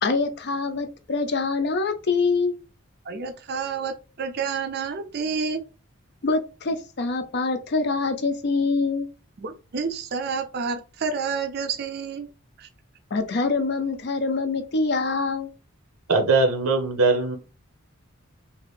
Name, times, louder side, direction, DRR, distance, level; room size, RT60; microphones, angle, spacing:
voice 1, 0.0-2.5 6.2-9.1 13.1-15.5, left 3 dB, 50° left, 8 dB, 0.5 m, -25 dB
voice 2, 3.1-5.6 9.4-12.3 12.6-12.7, right 5 dB, 50° right, 7 dB, 0.4 m, -29 dB
voice 3, 16.1-17.4, right 3 dB, 85° right, 6 dB, 0.7 m, -20 dB
2.9 x 2.5 x 3.1 m, 0.32 s
head